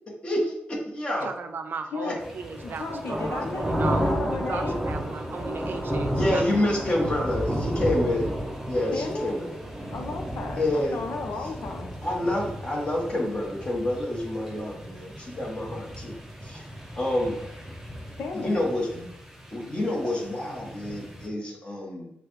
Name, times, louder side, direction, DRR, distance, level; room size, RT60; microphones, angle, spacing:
voice 1, 0.2-1.3 2.0-2.2 6.1-8.3 8.7-9.5 10.5-11.0 12.0-16.1 16.4-16.7 17.0-17.4 18.3-19.0 19.5-22.1, left 1 dB, 25° left, -2 dB, 1.3 m, -28 dB
voice 2, 1.2-6.4, right 5 dB, 60° right, 6 dB, 0.5 m, -36 dB
sound 1, 2.2-21.3, equal, 5° right, 0.7 m, -33 dB
voice 3, 2.6-4.8 8.9-9.4 9.9-11.9 18.2-18.6, left 3 dB, 80° left, 3 dB, 0.8 m, -33 dB
6.6 x 2.3 x 3.2 m, 0.80 s
wide cardioid pair, 155°, 4 cm